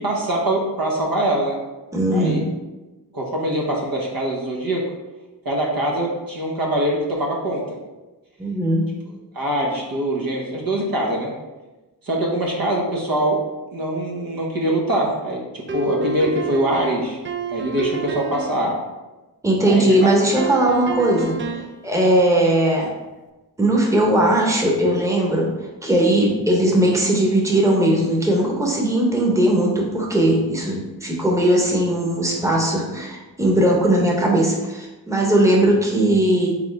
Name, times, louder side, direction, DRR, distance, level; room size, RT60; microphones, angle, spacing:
voice 1, 0.0-1.6 2.1-2.4 3.1-4.8 5.4-7.8 9.3-11.3 12.0-13.4 13.7-17.2 17.5-18.8 19.6-20.1, right 1 dB, 60° right, -2 dB, 1.1 m, -23 dB
voice 2, 1.9-2.4 8.4-8.9 19.4-21.4 21.8-22.9 23.6-25.5 25.8-36.5, right 1 dB, 5° right, -2 dB, 1.0 m, -18 dB
sound 1, 15.7-18.7 20.4-21.8, right 4 dB, 30° right, 0.5 m, -28 dB
3.7 x 3.5 x 3.4 m, 1.1 s
cardioid pair, 45°, 41 cm